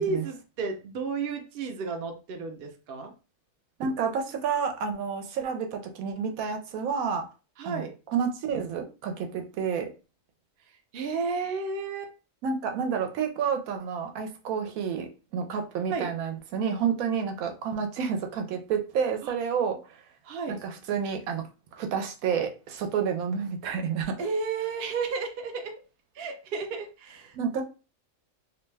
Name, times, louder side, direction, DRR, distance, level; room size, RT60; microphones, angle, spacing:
voice 1, 0.0-3.1 7.6-7.9 10.9-12.1 15.9-16.1 19.2-19.3 20.2-20.6 24.2-25.7 26.2-27.4, right 4 dB, 60° right, 4 dB, 0.6 m, -32 dB
voice 2, 3.8-7.3 7.6-7.8 8.1-9.9 12.4-20.0 20.5-21.4 21.7-24.2 27.3-27.6, right 6 dB, 85° right, 5 dB, 1.0 m, -30 dB
2.6 x 2.2 x 3.2 m, 0.33 s
omnidirectional pair, 1.5 m